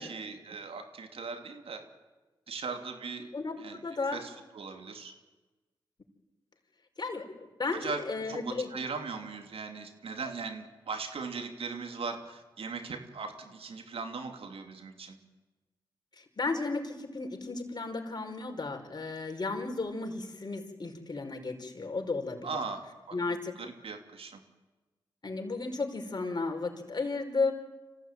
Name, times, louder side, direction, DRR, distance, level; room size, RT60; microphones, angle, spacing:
voice 1, 0.0-1.8 2.5-3.3 3.6-3.8 4.1-5.1 7.7-15.2 22.4-24.4, right 4 dB, 75° right, 5 dB, 2.9 m, -39 dB
voice 2, 3.3-4.2 7.0-8.7 16.2-22.5 23.1-23.6 25.2-27.5, left 3 dB, 45° left, 4 dB, 5.0 m, -34 dB
26.0 x 16.0 x 9.2 m, 1.2 s
supercardioid pair, 40°, 10 cm